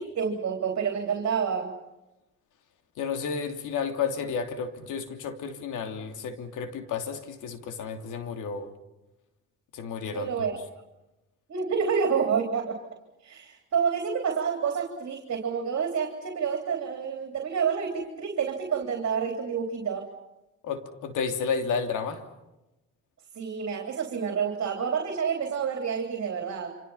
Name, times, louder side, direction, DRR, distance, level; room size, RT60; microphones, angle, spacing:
voice 1, 0.0-1.7 10.1-10.6 11.5-12.8 13.2-20.1 23.4-26.7, right 6 dB, 55° right, 3 dB, 3.5 m, -28 dB
voice 2, 3.0-8.7 9.7-10.6 20.6-22.2, left 6 dB, 80° left, 6 dB, 3.1 m, -32 dB
29.0 x 26.0 x 5.7 m, 0.97 s
cardioid pair, 90°, 30 cm